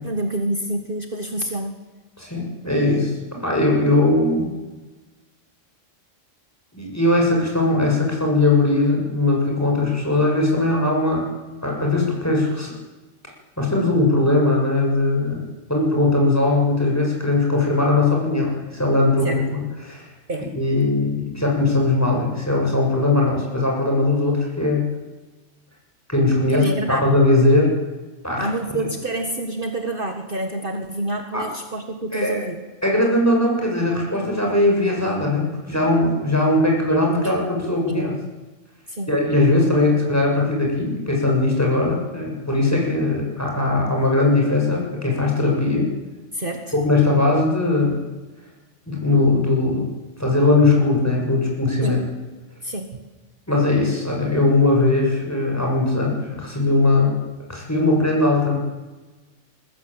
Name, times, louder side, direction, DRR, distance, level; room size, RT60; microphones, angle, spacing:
voice 1, 0.0-1.8 19.2-19.4 20.3-20.5 26.5-27.1 28.4-32.6 37.2-37.3 37.9-38.0 38.9-39.1 46.3-46.7 51.8-52.0 52.6-53.0, right 1 dB, 45° right, 5 dB, 1.9 m, -27 dB
voice 2, 2.2-3.1 3.4-4.5 6.7-11.3 11.6-12.7 13.6-15.4 15.7-19.6 19.8-20.1 20.6-24.9 26.1-27.7 28.2-28.5 31.3-31.4 32.1-32.5 32.8-38.1 39.1-45.9 46.8-48.0 48.9-49.9 50.2-52.0 53.5-57.2 57.5-58.6, left 2 dB, 10° left, -1 dB, 7.2 m, -19 dB
22.0 x 19.0 x 9.0 m, 1.2 s
omnidirectional pair, 1.3 m